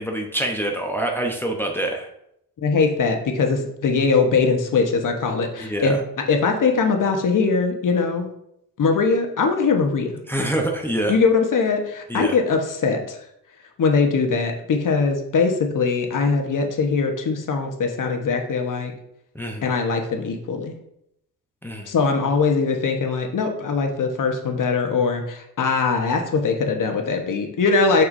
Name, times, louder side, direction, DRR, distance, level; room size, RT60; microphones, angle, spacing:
voice 1, 0.0-2.1 5.6-6.0 10.3-11.1 12.1-12.4 19.3-19.7 21.6-21.9, right 1 dB, 5° left, 1 dB, 0.8 m, -25 dB
voice 2, 2.6-6.0 6.3-8.3 8.8-10.2 11.1-13.2 13.8-18.9 19.6-20.7 21.9-28.1, left 4 dB, 50° left, 4 dB, 1.2 m, -21 dB
6.0 x 6.0 x 2.6 m, 0.77 s
cardioid pair, 85°, 40 cm